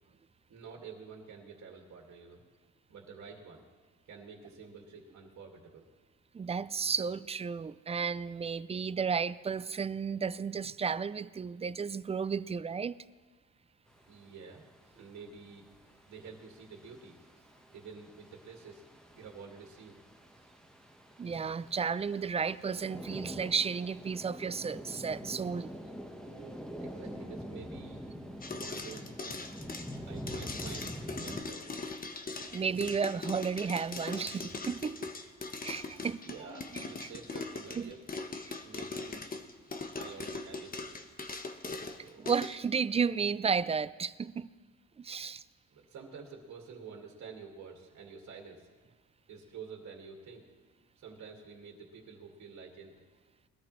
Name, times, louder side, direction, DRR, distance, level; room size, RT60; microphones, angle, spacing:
voice 1, 0.5-2.4 2.9-3.6 4.1-5.9 14.1-14.6 14.9-15.7 16.1-17.2 17.7-18.8 19.1-20.0 26.8-28.0 28.3-29.4 30.1-31.8 36.2-38.0 38.6-39.2 40.0-40.8 42.0-42.3 45.7-48.7 49.3-50.5 51.0-52.9, right 5 dB, 65° right, 2.2 m, -49 dB
voice 2, 6.3-13.0 21.2-25.8 32.5-35.1 35.6-36.2 37.8-37.9 38.4-38.5 42.2-44.5 45.0-45.4, right 6 dB, 20° right, 0.4 m, -33 dB
sound 1, 13.9-31.4, equal, ahead, 1.3 m, -46 dB
sound 2, 24.6-26.8, right 5 dB, 40° right, 2.1 m, -55 dB
sound 3, 28.4-42.6, left 3 dB, 30° left, 1.2 m, -41 dB
21.0 x 13.5 x 3.2 m
cardioid pair, 90°, 30 cm